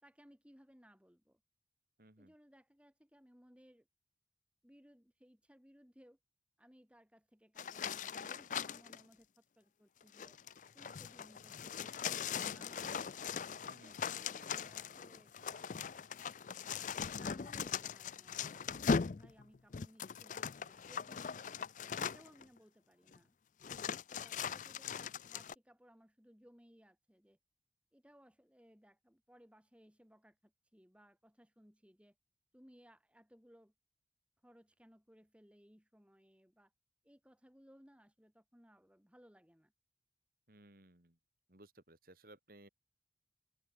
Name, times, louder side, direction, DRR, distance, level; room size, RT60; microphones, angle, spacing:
voice 1, 0.0-1.4 2.2-3.9 4.6-6.2 6.6-10.4 10.7-13.0 13.7-15.9 17.1-21.4 22.0-23.4 23.6-23.7 24.1-27.4 27.9-32.1 32.5-33.7 34.4-36.7 37.0-39.7, equal, 5° right, 4.4 m, -63 dB
voice 2, 2.0-2.3 13.6-14.1 40.5-41.2 41.5-42.7, right 1 dB, 55° right, 2.8 m, -60 dB
sound 1, 7.6-9.0 10.0-22.4 23.1-23.2 23.6-25.5, left 6 dB, 45° left, 0.4 m, -40 dB
open air
head